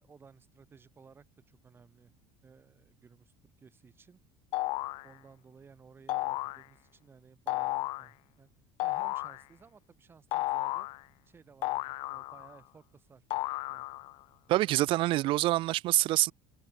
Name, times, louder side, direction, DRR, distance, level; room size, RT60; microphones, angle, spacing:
voice 1, 0.0-2.1 2.4-4.2 5.0-8.5 8.8-10.9 11.3-13.2 13.7-13.9, right 5 dB, 20° right, 2.4 m, -57 dB
sound 1, 4.5-5.1 6.1-6.6 7.5-8.1 8.8-9.4 10.3-11.0 11.6-12.6 13.3-14.1, left 19 dB, 50° left, 0.4 m, -33 dB
voice 2, 14.5-16.3, right 17 dB, 50° right, 0.6 m, -26 dB
cardioid pair, 155°, 11 cm